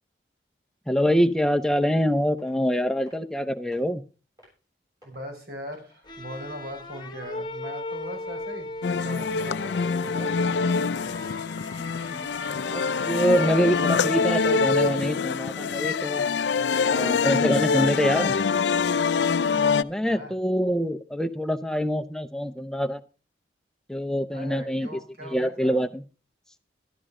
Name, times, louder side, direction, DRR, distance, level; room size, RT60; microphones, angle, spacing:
voice 1, 0.9-4.0 11.8-16.2 16.9-18.4 19.8-23.0 23.9-24.9 25.3-26.0, equal, 5° left, 8 dB, 0.6 m, -25 dB
sound 1, 1.8-2.1 2.4-2.6 3.1-3.4 3.7-3.8 4.4-4.6 5.0-5.3 5.7-6.4 7.0-7.3 7.7-7.8 8.4-8.5 9.0-9.2 9.7-9.9 10.3-10.4, left 1 dB, 20° right, 7.2 m, -56 dB
voice 2, 5.0-10.9 20.0-20.4 24.3-25.8, equal, 60° right, 3 dB, 5.6 m, -40 dB
sound 2, 6.0-13.5, left 2 dB, 25° left, 1.3 m, -38 dB
sound 3, 8.8-19.8, left 5 dB, 85° left, 0.5 m, -25 dB
12.5 x 12.0 x 3.7 m, 0.34 s
head